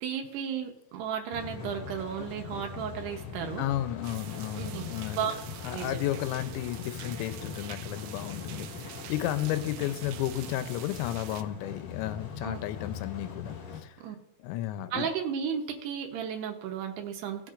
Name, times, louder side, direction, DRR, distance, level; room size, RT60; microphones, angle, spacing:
voice 1, 0.0-3.6 4.5-4.8 5.2-5.3 5.7-6.0 12.4-12.6 14.0-14.2 14.9-17.5, right 8 dB, 75° right, 3 dB, 2.6 m, -34 dB
sound 1, 1.3-13.8, left 6 dB, 60° left, 2.3 m, -41 dB
voice 2, 3.6-5.4 5.6-14.0 14.4-15.1, left 13 dB, 80° left, 10 dB, 2.8 m, -33 dB
sound 2, 4.0-11.4, right 12 dB, 90° right, 2.3 m, -46 dB
18.0 x 7.2 x 2.5 m, 0.84 s
omnidirectional pair, 5.6 m